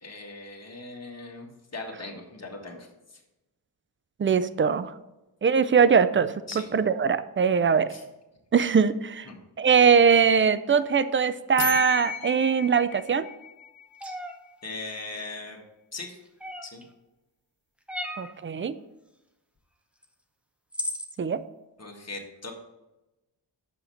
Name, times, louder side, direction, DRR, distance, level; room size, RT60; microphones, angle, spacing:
voice 1, 0.0-3.2 6.5-6.7 7.9-8.0 9.3-9.4 14.6-15.6 15.9-16.2 16.6-16.8 21.8-22.5, left 3 dB, 35° left, 0 dB, 1.7 m, -39 dB
voice 2, 4.2-4.9 5.4-6.3 6.7-7.9 8.5-9.3 9.6-13.2 18.2-18.7 21.2-21.4, right 6 dB, 30° right, 14 dB, 0.4 m, -21 dB
sound 1, 11.6-14.3, left 9 dB, 80° left, 1.1 m, -35 dB
sound 2, 14.0-14.3 16.4-16.8 17.9-18.3 20.0-20.1 20.7-21.1, equal, 5° right, 0.8 m, -34 dB
6.6 x 5.7 x 4.2 m, 0.98 s
cardioid pair, 70°, 46 cm